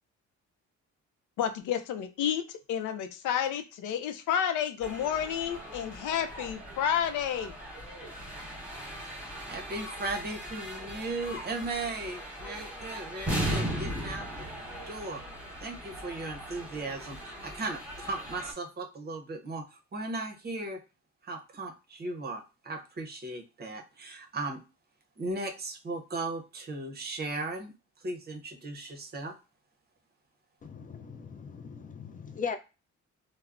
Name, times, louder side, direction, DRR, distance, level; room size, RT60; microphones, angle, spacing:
voice 1, 1.4-7.5, left 9 dB, 80° left, 10 dB, 0.5 m, -30 dB
sound 1, 4.8-18.5, equal, 5° right, 1.1 m, -38 dB
voice 2, 9.5-14.5 14.9-15.2 15.6-20.8 21.2-24.6 25.2-27.7 28.0-29.3, right 2 dB, 35° right, 5 dB, 0.7 m, -37 dB
voice 3, 30.6-32.6, left 6 dB, 30° left, 8 dB, 0.4 m, -38 dB
3.2 x 2.0 x 2.4 m, 0.30 s
cardioid pair, 90°, 30 cm